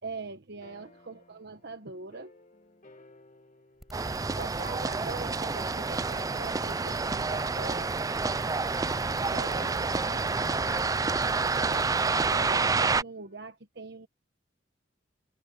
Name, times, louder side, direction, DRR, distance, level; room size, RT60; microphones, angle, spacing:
voice 1, 0.0-2.3 4.3-7.9 9.3-10.7 11.5-14.1, right 3 dB, 60° right, 1.2 m, -42 dB
sound 1, 0.6-5.2 6.3-13.5, left 2 dB, 40° left, 2.1 m, -56 dB
sound 2, 3.8-12.4, equal, ahead, 5.6 m, -49 dB
sound 3, 3.9-13.0, right 4 dB, 20° right, 0.4 m, -28 dB
open air
head